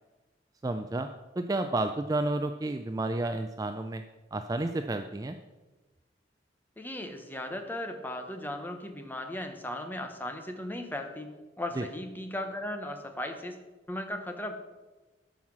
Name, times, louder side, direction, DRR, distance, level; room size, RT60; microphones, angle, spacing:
voice 1, 0.6-1.1 1.4-4.0 4.3-5.4 11.8-11.9, right 2 dB, 20° right, 7 dB, 0.3 m, -31 dB
voice 2, 6.8-11.3 11.6-13.6 13.9-14.5, left 1 dB, 10° left, 6 dB, 0.9 m, -37 dB
12.0 x 5.7 x 6.1 m, 1.2 s
head